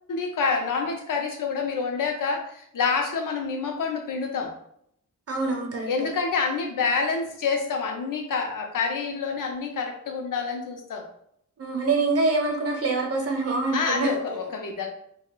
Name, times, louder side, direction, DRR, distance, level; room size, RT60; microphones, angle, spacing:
voice 1, 0.1-4.5 5.9-11.0 13.7-14.9, left 5 dB, 80° left, 3 dB, 0.6 m, -27 dB
voice 2, 5.3-6.1 11.6-14.4, right 3 dB, 50° right, 2 dB, 0.7 m, -25 dB
2.3 x 2.2 x 3.8 m, 0.71 s
wide cardioid pair, 135°, 31 cm